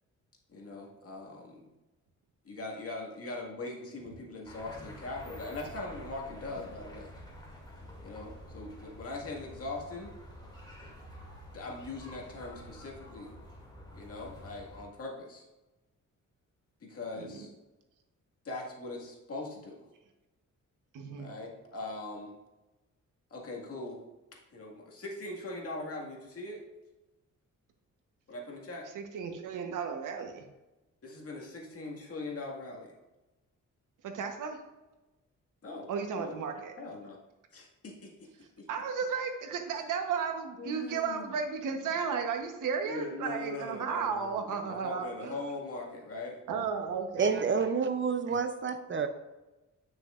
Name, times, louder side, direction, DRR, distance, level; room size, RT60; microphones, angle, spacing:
voice 1, 0.5-1.7 2.4-7.1 8.0-10.1 11.5-13.4 13.9-15.4 16.8-17.5 18.5-19.8 21.2-22.3 23.3-24.0 24.5-26.6 28.3-28.9 31.0-32.9 35.6-35.9 36.2-36.4 36.8-37.2 37.5-38.3 38.6-38.7 40.6-41.3 42.8-46.4, left 2 dB, 50° left, -1 dB, 1.9 m, -41 dB
sound 1, 4.4-14.9, left 1 dB, 15° left, 2.5 m, -49 dB
voice 2, 20.9-21.3 28.9-30.5 34.0-34.6 35.9-36.7 38.7-45.4 46.5-47.3, right 6 dB, 90° right, 5 dB, 1.1 m, -34 dB
voice 3, 47.2-49.1, right 5 dB, 40° right, 8 dB, 0.6 m, -29 dB
9.8 x 6.1 x 2.5 m, 1.1 s
cardioid pair, 100°, 30 cm